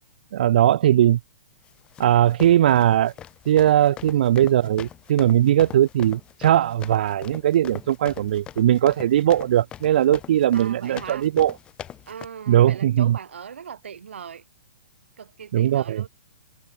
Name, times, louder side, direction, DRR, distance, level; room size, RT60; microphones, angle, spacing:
voice 1, 0.3-1.2 2.0-3.1 3.5-11.5 12.5-13.1 15.5-16.0, right 11 dB, 55° right, 0.4 m, -19 dB
sound 1, 1.7-12.3, left 10 dB, 15° left, 3.9 m, -42 dB
voice 2, 10.5-11.3 12.1-14.4 15.2-16.1, right 7 dB, 85° right, 5.0 m, -39 dB
hypercardioid pair, 165°, 6 cm